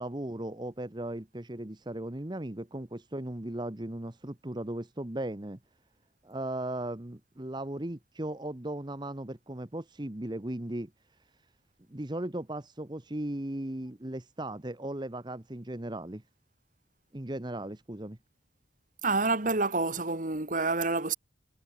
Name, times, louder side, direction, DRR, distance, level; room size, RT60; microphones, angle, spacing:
voice 1, 0.0-5.6 6.2-10.9 11.9-16.2 17.1-18.2, right 1 dB, 25° right, 1.1 m, -37 dB
voice 2, 19.0-21.1, right 3 dB, 45° right, 2.0 m, -28 dB
head